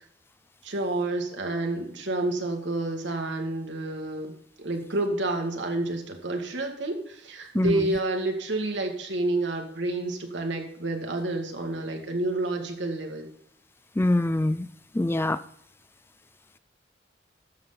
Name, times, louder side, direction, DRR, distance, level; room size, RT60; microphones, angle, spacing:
voice 1, 0.6-4.3 4.6-13.3, right 2 dB, 85° right, 3 dB, 2.0 m, -29 dB
voice 2, 7.5-7.9 14.0-14.7 14.9-15.4, left 1 dB, 15° left, 14 dB, 0.3 m, -24 dB
12.5 x 7.3 x 3.9 m, 0.71 s
head